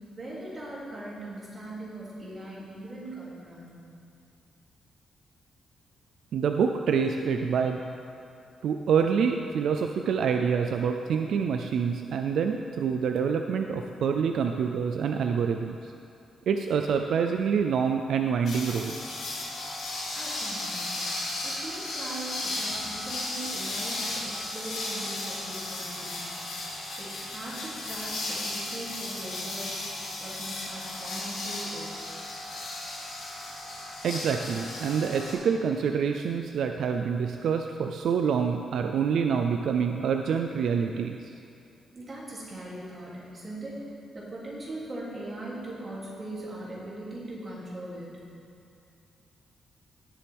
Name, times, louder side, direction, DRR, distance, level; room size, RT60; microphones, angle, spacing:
voice 1, 0.1-3.8 20.1-26.6 27.0-29.7 30.2-32.0 41.9-43.8 44.1-48.3, right 1 dB, 25° right, -7 dB, 2.7 m, -40 dB
voice 2, 6.3-7.8 8.6-15.9 16.5-18.9 34.0-41.2, right 6 dB, 65° right, 5 dB, 0.4 m, -26 dB
sound 1, 18.5-35.3, left 2 dB, 80° left, 2.6 m, -35 dB
17.0 x 7.6 x 3.5 m, 2.6 s
wide cardioid pair, 165°, 0 cm